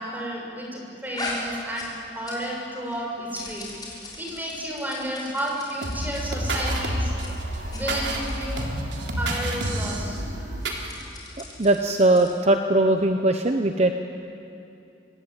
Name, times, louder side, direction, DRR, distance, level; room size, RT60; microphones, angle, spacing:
voice 1, 0.0-1.9 2.2-7.1 7.7-8.7 9.2-10.2, equal, 10° right, -2 dB, 6.5 m, -32 dB
sound 1, 1.1-2.6 2.9-6.2 6.6-6.8 7.1-7.3 7.6-7.8 8.2-8.6 9.2-9.4 9.6-9.7 10.5-12.4, left 2 dB, 25° left, 6.1 m, -39 dB
sound 2, 5.8-10.9, right 1 dB, 85° right, 3.6 m, -29 dB
voice 2, 11.6-13.9, right 2 dB, 40° right, 6 dB, 1.0 m, -20 dB
25.0 x 20.5 x 9.1 m, 2.7 s
head